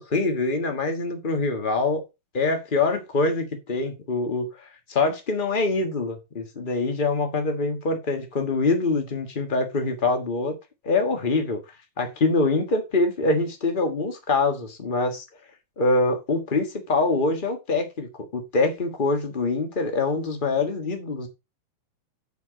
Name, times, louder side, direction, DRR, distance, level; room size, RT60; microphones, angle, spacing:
voice 1, 0.0-2.0 2.3-10.5 10.8-11.6 12.0-15.2 15.8-21.3, left 3 dB, 35° left, 0.7 m, -24 dB
9.2 x 4.6 x 5.0 m
omnidirectional pair, 3.5 m